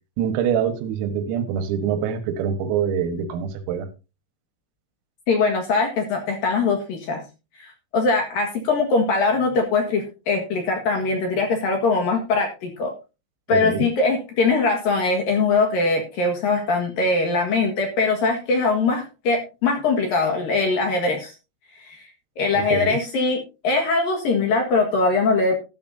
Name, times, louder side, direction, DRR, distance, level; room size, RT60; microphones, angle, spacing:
voice 1, 0.2-3.9 13.5-13.9 22.7-23.0, right 8 dB, 85° right, 10 dB, 4.1 m, -25 dB
voice 2, 5.3-7.2 7.6-12.9 13.5-21.3 21.8-22.0 22.4-25.6, left 3 dB, 60° left, 3 dB, 2.7 m, -22 dB
13.0 x 13.0 x 2.7 m, 0.29 s
omnidirectional pair, 6.0 m